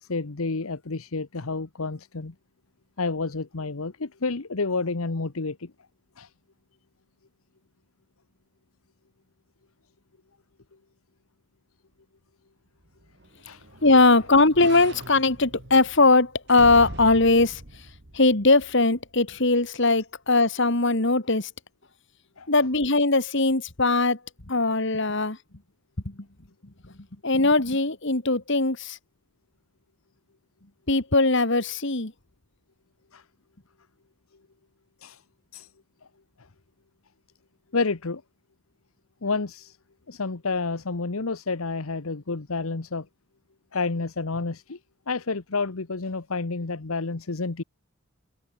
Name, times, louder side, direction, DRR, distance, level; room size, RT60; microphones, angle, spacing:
voice 1, 0.0-2.3 3.0-5.7 6.2-6.3 13.5-13.6 22.4-22.5 33.1-33.2 35.0-35.2 35.5-35.7 37.7-38.2 39.2-39.8 40.1-43.1 43.7-44.8 45.1-47.6, left 3 dB, 80° left, 1.1 m, -29 dB
sound 1, 12.9-19.2 19.6-19.7, right 1 dB, 55° right, 2.0 m, -42 dB
voice 2, 13.8-17.6 18.1-21.5 22.5-24.2 24.5-25.4 26.1-26.2 27.2-29.0 30.9-32.1, left 3 dB, 55° left, 2.2 m, -20 dB
head